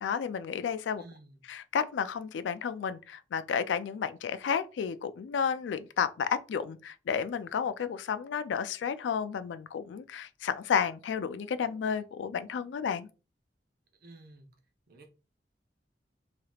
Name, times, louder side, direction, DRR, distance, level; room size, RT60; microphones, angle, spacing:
voice 1, 0.0-1.0 1.5-13.1, left 7 dB, 85° left, 0.3 m, -32 dB
voice 2, 1.0-1.4 14.0-14.5 14.9-15.1, right 2 dB, 60° right, 0.7 m, -52 dB
3.3 x 2.8 x 2.3 m
head